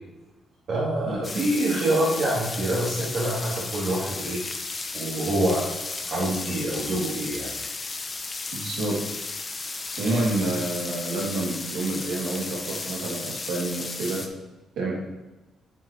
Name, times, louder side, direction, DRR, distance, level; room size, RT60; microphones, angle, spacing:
voice 1, 0.7-4.4 4.9-5.6 6.1-7.5, right 1 dB, 50° right, -8 dB, 2.5 m, -26 dB
sound 1, 1.2-14.3, left 3 dB, 25° left, 0.7 m, -34 dB
voice 2, 8.5-9.0 10.0-14.2 14.8-15.0, right 2 dB, 85° right, -2 dB, 2.2 m, -28 dB
9.5 x 6.0 x 3.0 m, 1.1 s
cardioid pair, 130°, 0 cm